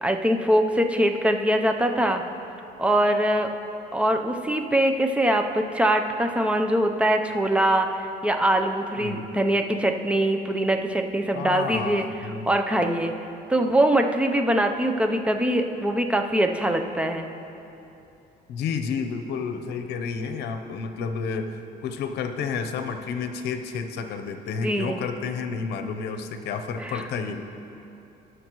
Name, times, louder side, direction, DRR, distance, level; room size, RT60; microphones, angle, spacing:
voice 1, 0.0-2.2 2.8-3.5 3.9-12.0 12.5-13.1 13.5-17.3 24.6-25.0 26.8-26.9, right 1 dB, 5° right, 5 dB, 0.7 m, -23 dB
voice 2, 9.0-9.3 11.3-12.5 18.5-27.4, left 5 dB, 75° left, 7 dB, 0.8 m, -31 dB
18.5 x 6.5 x 3.1 m, 2.9 s
cardioid pair, 110°, 17 cm